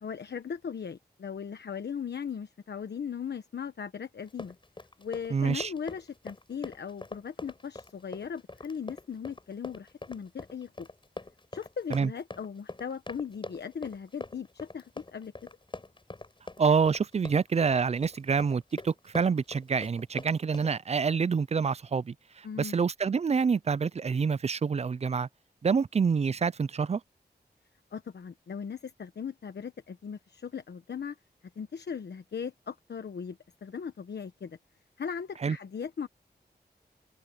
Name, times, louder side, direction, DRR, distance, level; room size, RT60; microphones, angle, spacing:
voice 1, 0.0-4.5 5.0-10.9 11.5-15.3 22.4-22.7 27.9-31.2 31.6-34.6 35.0-36.1, left 7 dB, 85° left, 1.2 m, -38 dB
Run, 4.2-20.7, left 2 dB, 30° left, 6.4 m, -43 dB
voice 2, 5.3-5.7 11.9-12.1 16.6-25.3 25.6-27.0 35.4-35.6, right 5 dB, 40° right, 0.4 m, -27 dB
wide cardioid pair, 90°, 17 cm